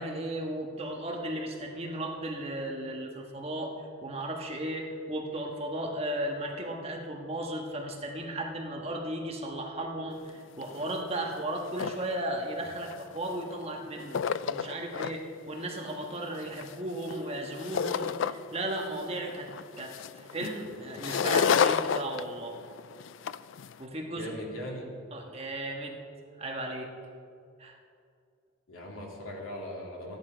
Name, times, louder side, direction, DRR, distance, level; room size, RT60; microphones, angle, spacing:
voice 1, 0.0-3.7 4.0-14.2 14.5-19.5 19.8-22.6 23.8-24.4 25.1-26.0 26.4-26.9 27.6-27.7, right 1 dB, 30° right, 1 dB, 1.4 m, -35 dB
sound 1, 10.3-10.4 10.6-10.9 11.3-12.1 12.8-13.6 13.9-15.1 15.6-18.6 19.0-23.7, left 7 dB, 65° left, 0.3 m, -30 dB
voice 2, 24.1-24.9 28.7-30.2, equal, 85° left, -2 dB, 2.8 m, -39 dB
14.0 x 10.5 x 5.1 m, 2.3 s
head